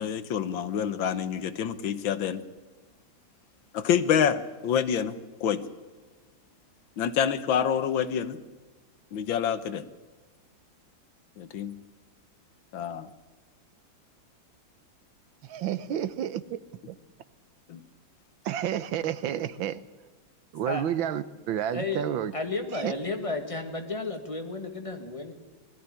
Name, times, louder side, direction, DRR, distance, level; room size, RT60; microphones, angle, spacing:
voice 1, 0.0-2.4 3.7-5.6 7.0-8.4 9.1-9.9 11.4-11.8 12.7-13.1 17.7-17.8, left 8 dB, 80° left, 12 dB, 1.8 m, -27 dB
voice 2, 15.4-16.6 16.9-17.0 18.4-19.8 20.5-22.3 22.7-22.9, right 10 dB, 85° right, 15 dB, 1.7 m, -30 dB
voice 3, 21.7-22.1 22.3-25.3, left 3 dB, 15° left, 5 dB, 1.9 m, -32 dB
20.5 x 14.0 x 9.9 m, 1.3 s
omnidirectional pair, 2.1 m